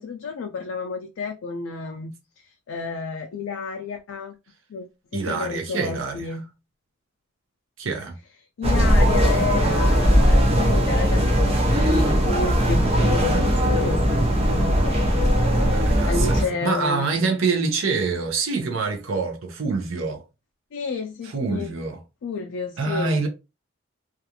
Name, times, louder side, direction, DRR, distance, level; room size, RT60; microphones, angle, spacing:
voice 1, 0.0-2.1 2.7-4.3 4.7-4.9 5.1-6.4 8.6-17.0 20.7-21.7 22.2-23.2, left 4 dB, 85° left, 0.4 m, -31 dB
voice 2, 5.1-6.3 7.8-8.1 15.7-20.2 21.2-22.0 22.8-23.3, right 4 dB, 80° right, 0.6 m, -26 dB
sound 1, 8.6-16.4, equal, 30° right, 0.5 m, -19 dB
2.4 x 2.3 x 2.7 m
head